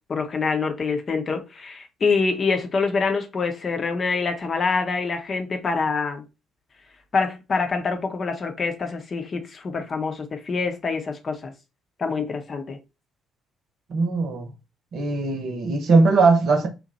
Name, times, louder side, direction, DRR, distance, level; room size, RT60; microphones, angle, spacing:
voice 1, 0.1-6.2 7.1-11.5 12.0-12.8, left 4 dB, 40° left, 0.7 m, -25 dB
voice 2, 13.9-14.5 14.9-16.7, right 3 dB, 55° right, 0.8 m, -20 dB
2.8 x 2.2 x 4.0 m
figure-of-eight pair, 45°, 0 cm